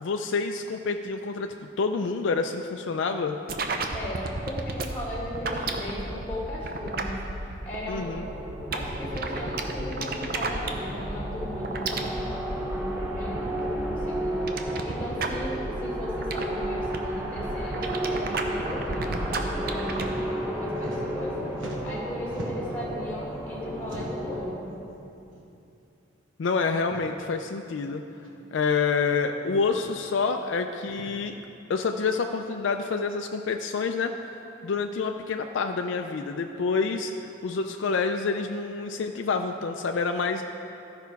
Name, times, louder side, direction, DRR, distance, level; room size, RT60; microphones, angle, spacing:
voice 1, 0.0-3.4 7.9-8.3 26.4-28.0 28.5-31.3 31.7-34.1 34.6-40.4, left 4 dB, 75° left, 5 dB, 0.4 m, -28 dB
sound 1, 3.5-20.0, right 2 dB, 50° right, 0.6 m, -33 dB
voice 2, 3.9-7.2 7.6-8.1 8.7-21.3 21.7-24.7, left 1 dB, 10° left, -6 dB, 1.6 m, -36 dB
sound 2, 8.0-24.5, right 1 dB, 10° right, 0.8 m, -33 dB
sound 3, 19.9-20.1 20.4-21.3 21.5-22.8 23.8-24.4 25.3-25.5 25.8-25.9 26.8-27.1 28.2-28.3 29.5-29.8 30.8-31.1, right 1 dB, 90° right, 1.1 m, -41 dB
13.0 x 5.7 x 4.6 m, 2.8 s
head